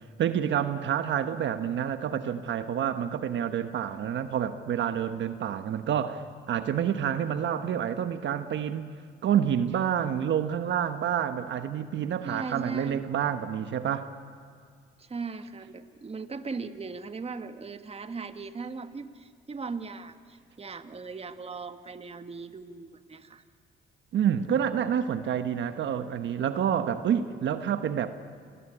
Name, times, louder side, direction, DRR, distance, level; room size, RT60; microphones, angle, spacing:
voice 1, 0.2-8.9 9.2-14.1 24.1-28.1, right 9 dB, 70° right, 9 dB, 1.2 m, -28 dB
voice 2, 12.2-13.0 15.0-23.4, right 4 dB, 30° right, 9 dB, 1.7 m, -38 dB
27.5 x 19.5 x 9.9 m, 2.2 s
cardioid pair, 90°, 20 cm